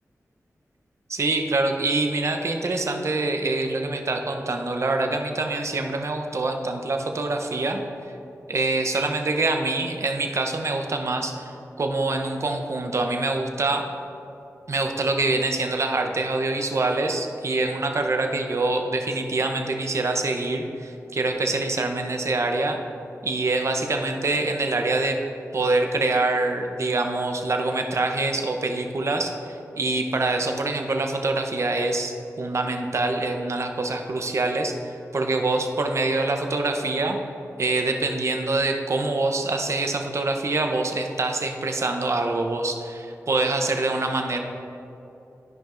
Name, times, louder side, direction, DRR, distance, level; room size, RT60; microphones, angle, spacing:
voice 1, 1.1-7.8 8.5-11.5 11.8-13.9 14.7-22.8 23.2-25.2 25.5-37.2 37.6-44.4, right 2 dB, 60° right, 4 dB, 0.7 m, -25 dB
13.0 x 5.3 x 2.5 m, 2.8 s
cardioid pair, 60°, 6 cm